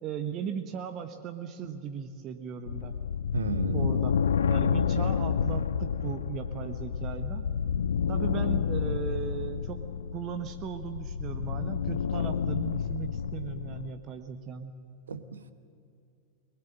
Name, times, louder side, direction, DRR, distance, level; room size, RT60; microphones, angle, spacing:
voice 1, 0.0-2.9 3.7-4.2 4.5-7.5 8.1-9.8 10.1-14.7, right 8 dB, 35° right, 8 dB, 1.2 m, -37 dB
sound 1, 2.7-13.9, left 7 dB, 65° left, 0.5 m, -29 dB
voice 2, 3.3-3.9 15.1-15.5, right 4 dB, 70° right, 12 dB, 1.2 m, -33 dB
22.0 x 21.0 x 7.7 m, 2.5 s
figure-of-eight pair, 90°, 0 cm